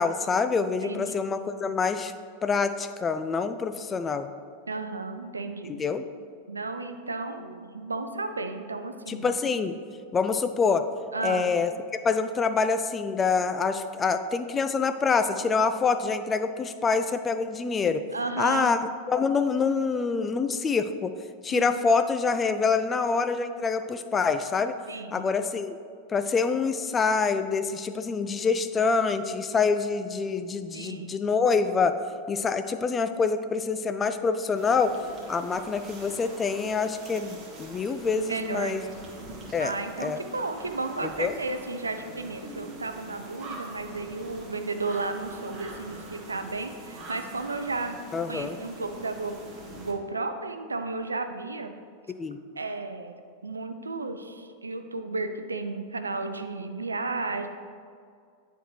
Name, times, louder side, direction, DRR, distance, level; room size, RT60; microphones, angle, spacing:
voice 1, 0.0-2.1 2.4-4.3 5.7-6.0 9.1-9.8 10.1-10.8 11.2-11.7 12.0-18.0 18.4-18.8 19.1-21.1 21.4-24.7 25.1-25.8 26.1-32.0 32.3-34.9 35.3-38.8 39.5-39.7 40.0-40.2 41.0-41.4 48.1-48.6 52.1-52.4, left 5 dB, 20° left, 9 dB, 0.3 m, -26 dB
voice 2, 0.8-1.2 4.7-5.8 6.5-9.3 11.1-11.5 18.1-18.7 21.5-21.7 24.9-25.3 30.7-31.2 38.3-38.9 39.6-48.0 48.3-49.3 49.8-51.7 52.6-57.5, right 3 dB, 75° right, 8 dB, 0.4 m, -33 dB
sound 1, 34.5-49.9, right 2 dB, 25° right, 1.3 m, -44 dB
9.8 x 4.4 x 3.2 m, 2.2 s
figure-of-eight pair, 90°, 0 cm